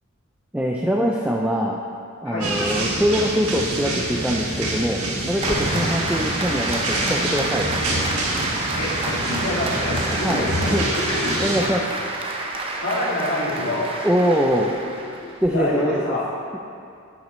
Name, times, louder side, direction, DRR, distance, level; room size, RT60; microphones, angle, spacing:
voice 1, 0.5-1.8 2.2-5.0 5.3-7.7 10.1-10.9 11.2-11.8 14.0-14.7 15.4-16.2, equal, 5° right, -1 dB, 0.4 m, -23 dB
voice 2, 2.2-2.6 5.5-5.9 8.7-11.4 11.7-11.8 12.8-13.9 14.2-14.3 14.9-16.3, left 1 dB, 60° left, -6 dB, 2.3 m, -27 dB
sound 1, 2.4-11.6, right 1 dB, 85° right, 1.6 m, -26 dB
Applause, 5.4-15.5, right 2 dB, 25° right, 0.8 m, -29 dB
11.5 x 8.2 x 3.2 m, 2.5 s
head